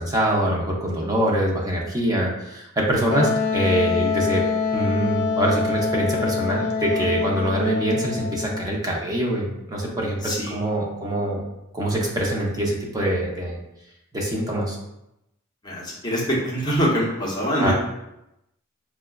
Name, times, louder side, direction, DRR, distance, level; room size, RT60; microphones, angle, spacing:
voice 1, 0.0-4.4 4.7-10.2 10.5-11.4 11.7-13.6 14.1-14.8 17.6-17.7, right 1 dB, 15° right, -2 dB, 0.6 m, -24 dB
Wind instrument woodwind instrument, 3.1-8.7, left 4 dB, 90° left, 0.5 m, -25 dB
voice 2, 10.2-10.6 15.6-17.7, equal, 20° left, -5 dB, 0.8 m, -24 dB
4.6 x 2.2 x 2.2 m, 0.87 s
head